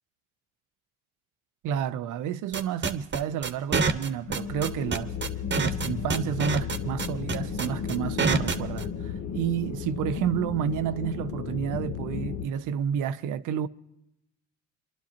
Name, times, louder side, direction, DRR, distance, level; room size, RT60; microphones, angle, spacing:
voice 1, 1.6-5.1 5.5-13.7, right 9 dB, 85° right, 0.6 m, -30 dB
sound 1, 2.5-8.8, right 4 dB, 35° right, 1.0 m, -26 dB
sound 2, 4.2-12.5, left 7 dB, 65° left, 0.9 m, -34 dB
28.0 x 11.5 x 2.9 m
cardioid pair, 90°, 30 cm